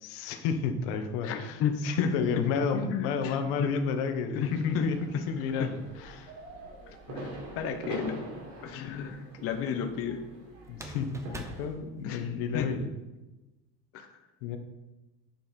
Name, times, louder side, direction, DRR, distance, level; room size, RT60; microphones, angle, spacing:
voice 1, 0.0-5.0 5.3-6.3 8.9-9.0 9.6-9.7 10.7-12.9 14.4-14.6, left 6 dB, 90° left, 6 dB, 1.3 m, -31 dB
voice 2, 1.2-2.1 2.7-3.7 4.3-4.9 5.1-5.2 5.6-5.7 6.9-8.2 8.6-9.2 9.4-10.2 12.0-12.7 13.9-14.1, left 7 dB, 45° left, 5 dB, 1.0 m, -33 dB
sound 1, 4.3-11.6, right 2 dB, 85° right, 3.7 m, -44 dB
sound 2, 7.6-8.3 10.7-12.7, right 1 dB, 10° right, 0.7 m, -45 dB
10.5 x 7.4 x 4.5 m, 1.1 s
cardioid pair, 165°, 31 cm